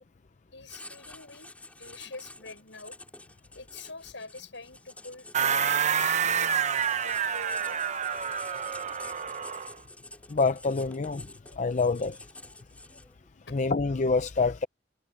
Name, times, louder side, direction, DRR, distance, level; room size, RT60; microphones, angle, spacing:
voice 1, 0.5-1.5 1.8-3.0 3.5-5.9 6.3-7.9 13.5-13.6, left 3 dB, 80° left, 7.2 m, -45 dB
Writing, 0.7-13.3, left 2 dB, 10° left, 2.2 m, -49 dB
sound 1, 5.3-9.8, right 7 dB, 40° right, 0.7 m, -28 dB
voice 2, 10.3-11.3 11.5-12.2 13.5-14.7, left 4 dB, 40° left, 0.5 m, -26 dB
head